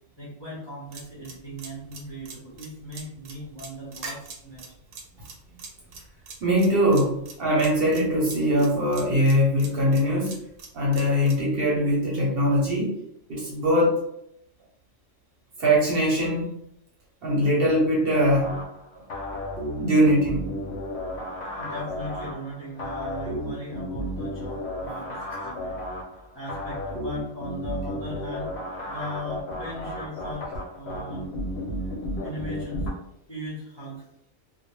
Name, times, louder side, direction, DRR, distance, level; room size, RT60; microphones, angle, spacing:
voice 1, 0.2-4.6 21.5-25.8 26.3-28.6 28.8-31.3 32.2-32.9 33.3-34.1, equal, 30° left, -7 dB, 0.5 m, -38 dB
sound 1, 0.9-11.4, right 4 dB, 80° right, 1.0 m, -42 dB
voice 2, 6.4-10.4 10.7-12.9 13.3-14.0 15.6-16.5 17.2-18.6 19.8-20.5, equal, 55° right, -4 dB, 0.8 m, -22 dB
sound 2, 18.2-32.9, equal, 65° left, 0.8 m, -33 dB
2.1 x 2.0 x 3.0 m, 0.77 s
omnidirectional pair, 1.3 m